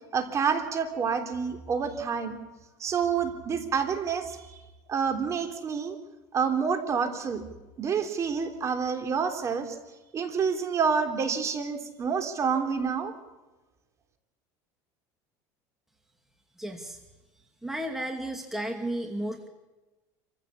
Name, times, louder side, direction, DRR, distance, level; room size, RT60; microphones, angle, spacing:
voice 1, 0.1-2.4 2.8-4.6 4.9-6.0 6.3-7.4 7.8-9.8 10.1-13.1, right 6 dB, 35° right, 7 dB, 3.4 m, -28 dB
voice 2, 16.6-17.0 17.6-19.5, right 1 dB, 5° right, 3 dB, 2.4 m, -33 dB
27.0 x 15.5 x 8.4 m, 1.1 s
supercardioid pair, 120°, 9 cm